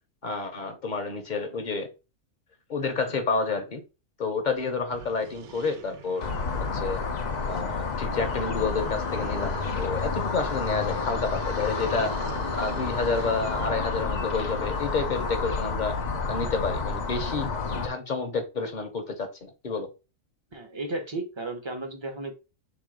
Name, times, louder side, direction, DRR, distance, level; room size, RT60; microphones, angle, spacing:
voice 1, 0.2-1.9 2.7-3.8 4.2-6.3 6.7-7.0 7.5-12.1 12.5-16.0 16.3-19.9, left 4 dB, 40° left, 6 dB, 0.7 m, -29 dB
sound 1, 4.5-4.6 4.9-15.7, right 7 dB, 80° right, 1.2 m, -43 dB
sound 2, 6.2-17.9, left 4 dB, 70° left, 0.4 m, -30 dB
voice 2, 20.5-22.3, right 2 dB, 30° right, 5 dB, 0.5 m, -34 dB
3.5 x 3.0 x 4.8 m, 0.30 s
omnidirectional pair, 1.5 m